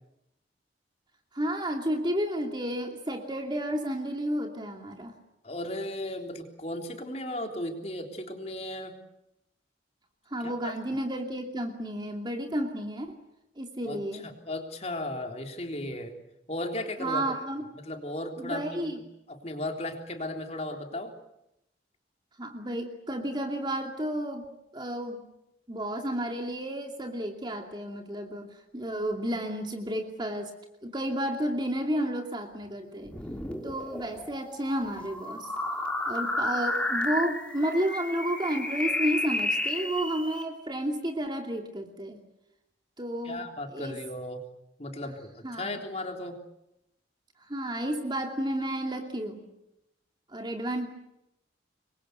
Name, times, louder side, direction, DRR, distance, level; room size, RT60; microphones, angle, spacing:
voice 1, 1.3-5.1 10.3-13.2 13.6-14.3 17.0-17.7 18.4-19.0 22.4-24.4 24.7-25.2 25.7-30.5 30.8-33.1 33.6-35.5 36.1-42.2 43.0-43.5 43.7-44.0 45.4-45.8 47.5-49.5 50.3-50.9, right 1 dB, 25° right, 3 dB, 2.6 m, -31 dB
voice 2, 5.4-9.0 10.4-10.7 13.9-16.1 16.5-17.2 17.8-19.0 19.3-21.1 43.2-44.4 44.8-46.4, left 1 dB, 35° left, 4 dB, 3.6 m, -36 dB
sound 1, 33.0-40.4, left 2 dB, 5° left, 2.9 m, -32 dB
27.0 x 23.0 x 8.1 m, 0.83 s
head